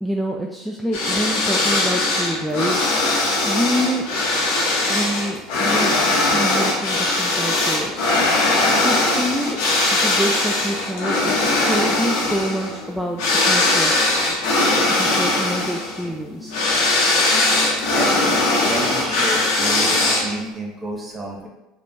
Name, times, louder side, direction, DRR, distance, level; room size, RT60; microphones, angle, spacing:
voice 1, 0.0-4.1 4.9-5.9 6.3-8.0 8.8-9.6 10.0-11.4 11.7-13.9 15.0-16.5, equal, ahead, -1 dB, 0.5 m, -26 dB
sound 1, 0.9-20.5, left 2 dB, 70° left, 1.3 m, -20 dB
voice 2, 17.9-21.5, right 1 dB, 25° right, -1 dB, 1.3 m, -30 dB
4.9 x 3.7 x 2.8 m, 0.96 s
hypercardioid pair, 85°, 0 cm